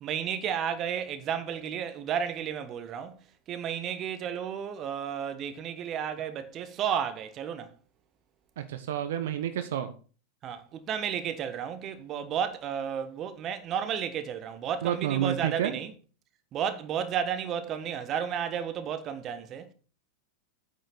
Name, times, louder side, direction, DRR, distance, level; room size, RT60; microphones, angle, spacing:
voice 1, 0.0-3.2 3.5-7.7 10.4-15.9 16.5-19.7, right 8 dB, 30° right, 1.3 m, -32 dB
voice 2, 8.6-9.9 14.8-15.7, right 11 dB, 55° right, 1.1 m, -29 dB
9.0 x 6.4 x 6.6 m
figure-of-eight pair, 90°, 0 cm